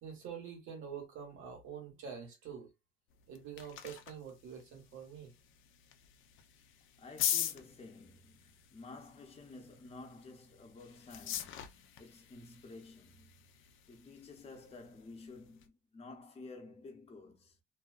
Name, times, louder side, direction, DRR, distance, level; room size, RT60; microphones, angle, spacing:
voice 1, 0.0-2.7 3.3-5.3, right 7 dB, 85° right, 1.2 m, -46 dB
sound 1, 3.1-15.7, left 10 dB, 80° left, 0.4 m, -43 dB
voice 2, 7.0-17.6, left 3 dB, 30° left, 0.7 m, -52 dB
2.6 x 2.2 x 2.4 m
cardioid pair, 90°, 20 cm